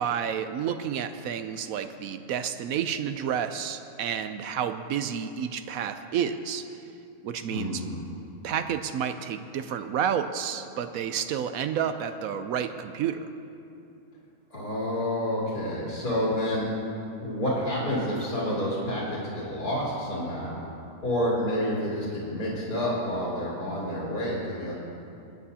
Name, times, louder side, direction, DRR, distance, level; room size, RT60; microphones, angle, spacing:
voice 1, 0.0-6.6 7.2-7.8 8.4-13.3, right 8 dB, 75° right, 9 dB, 1.0 m, -30 dB
voice 2, 7.5-8.0 14.5-16.7 17.2-20.6 21.0-24.7, equal, 90° left, -8 dB, 3.4 m, -29 dB
28.5 x 9.5 x 2.8 m, 2.7 s
omnidirectional pair, 1.6 m